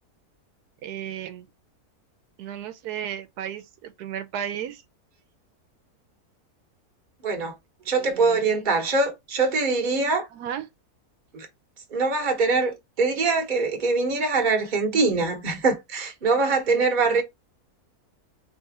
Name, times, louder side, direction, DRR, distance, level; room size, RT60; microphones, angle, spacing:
voice 1, 0.8-1.5 2.4-4.8 8.0-8.5 10.3-10.7 16.7-17.2, right 10 dB, 80° right, 1.1 m, -34 dB
voice 2, 7.2-7.5 7.9-10.3 11.3-11.5 11.9-17.2, right 3 dB, 35° right, 1.1 m, -23 dB
3.6 x 3.3 x 4.0 m
omnidirectional pair, 1.6 m